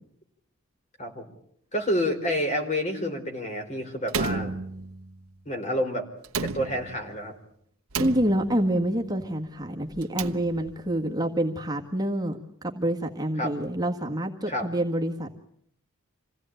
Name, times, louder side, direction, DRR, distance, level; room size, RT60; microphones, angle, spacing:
voice 1, 1.7-4.5 5.5-6.1 6.4-7.3 13.4-13.5 14.5-14.7, equal, 30° left, 4 dB, 4.2 m, -28 dB
Slam, 4.1-5.2 6.2-7.2 7.9-8.8 9.9-10.9, right 4 dB, 70° right, 1.0 m, -33 dB
voice 2, 8.0-15.3, right 1 dB, 15° right, 1 dB, 1.7 m, -27 dB
27.0 x 16.5 x 9.1 m, 0.70 s
head